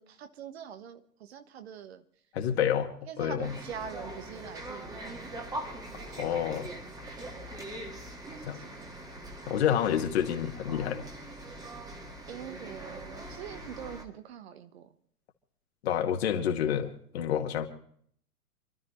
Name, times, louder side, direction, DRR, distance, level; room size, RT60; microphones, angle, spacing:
voice 1, 0.0-2.0 3.1-5.4 5.9-7.0 7.3-7.5 8.3-8.9 12.3-14.9, right 8 dB, 45° right, 9 dB, 1.3 m, -44 dB
voice 2, 2.3-2.9 3.2-3.6 6.0-6.7 8.4-8.6 9.5-11.0 15.8-17.7, left 9 dB, 45° left, 4 dB, 2.2 m, -28 dB
sound 1, 3.4-14.0, right 1 dB, 10° right, 1.9 m, -42 dB
28.5 x 12.5 x 3.2 m, 0.64 s
figure-of-eight pair, 115°, 45 cm